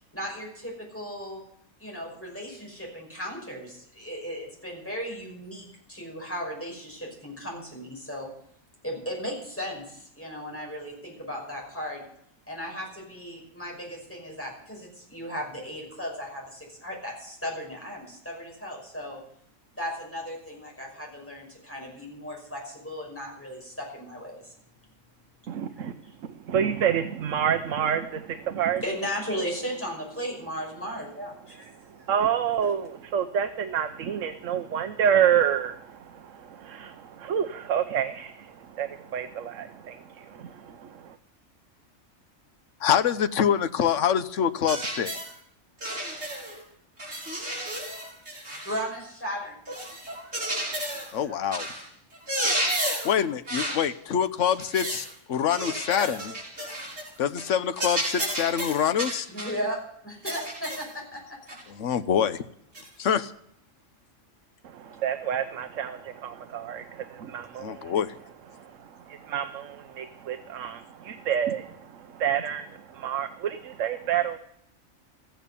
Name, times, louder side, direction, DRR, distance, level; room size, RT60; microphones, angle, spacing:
voice 1, 0.1-1.4 1.8-8.3 8.8-12.0 12.5-19.2 19.8-24.5 25.7-26.2 28.8-32.1 48.6-49.6 51.2-51.4 55.9-56.1 59.3-61.4, equal, 10° left, -2 dB, 5.6 m, -36 dB
voice 2, 25.5-25.9 26.2-28.8 32.1-41.2 64.6-67.9 68.5-74.4, right 8 dB, 75° right, 9 dB, 1.1 m, -28 dB
voice 3, 42.8-45.1 51.1-51.7 53.0-56.2 57.2-59.3 61.7-62.4 63.0-63.3 67.6-68.1, left 8 dB, 70° left, 12 dB, 1.2 m, -25 dB
sound 1, 44.7-45.3 45.8-46.6 47.0-48.9 49.7-51.1 51.5-51.8 52.1-53.2 53.5-53.9 54.4-55.1 55.5-57.1 57.4-57.5 57.8-59.6 60.3-60.9 61.5-61.6 62.7-62.9, right 1 dB, 55° right, 5.6 m, -32 dB
14.5 x 9.2 x 6.9 m, 0.69 s
omnidirectional pair, 1.4 m